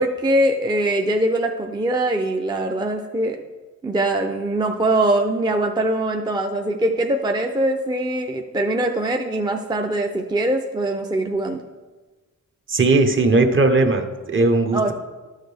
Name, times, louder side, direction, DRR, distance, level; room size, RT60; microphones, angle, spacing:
voice 1, 0.0-3.4 3.8-11.6 14.7-14.9, right 1 dB, 15° right, 4 dB, 0.4 m, -22 dB
voice 2, 12.7-14.9, right 3 dB, 40° right, 5 dB, 0.9 m, -18 dB
11.5 x 6.5 x 3.4 m, 1.3 s
wide cardioid pair, 115°, 31 cm